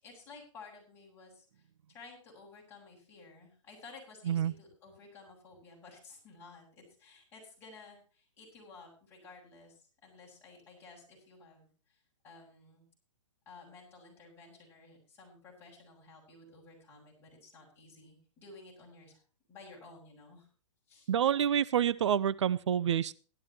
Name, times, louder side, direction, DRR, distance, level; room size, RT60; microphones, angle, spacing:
voice 1, 0.0-12.8 13.5-19.2 19.5-20.5 20.9-21.1, left 3 dB, 15° left, -3 dB, 7.7 m, -54 dB
voice 2, 21.1-23.1, right 9 dB, 65° right, 16 dB, 0.6 m, -28 dB
17.5 x 13.0 x 3.0 m, 0.39 s
hypercardioid pair, 155°, 16 cm